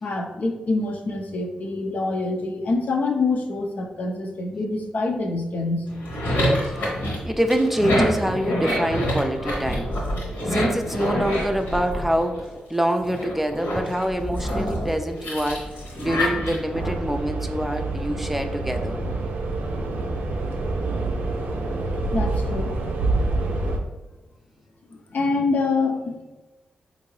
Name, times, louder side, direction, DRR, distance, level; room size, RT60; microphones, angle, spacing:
voice 1, 0.0-5.9 22.1-22.7 24.9-26.2, left 3 dB, 60° left, 2 dB, 0.6 m, -25 dB
sound 1, 5.9-12.6 13.0-16.9, equal, 80° left, 1.3 m, -26 dB
voice 2, 7.2-9.9 10.5-15.7 16.0-19.0, equal, 5° right, 5 dB, 0.4 m, -25 dB
sound 2, 16.7-23.8, right 2 dB, 70° right, 0.5 m, -27 dB
3.7 x 2.6 x 3.1 m, 1.1 s
supercardioid pair, 45°, 3 cm